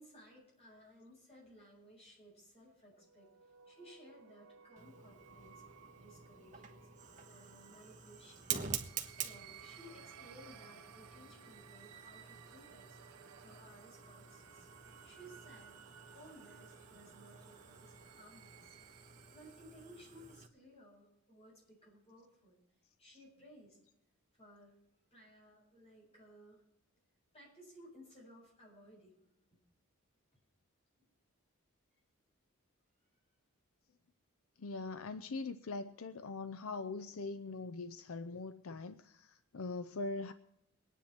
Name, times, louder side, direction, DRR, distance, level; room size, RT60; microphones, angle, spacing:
voice 1, 0.0-5.6 6.0-6.9 7.2-8.5 9.0-14.7 15.0-15.8 16.1-18.8 19.3-22.6 23.0-23.8 24.3-24.8 25.1-26.6 27.3-29.2 29.5-29.6 30.3-30.4 31.0-31.1, equal, 25° left, 7.6 m, -59 dB
sound 1, 2.9-19.8, right 7 dB, 85° right, 0.7 m, -59 dB
Fire, 4.8-20.5, right 7 dB, 35° right, 1.3 m, -48 dB
voice 2, 34.6-40.3, left 3 dB, 70° left, 0.6 m, -42 dB
24.0 x 10.0 x 4.4 m
head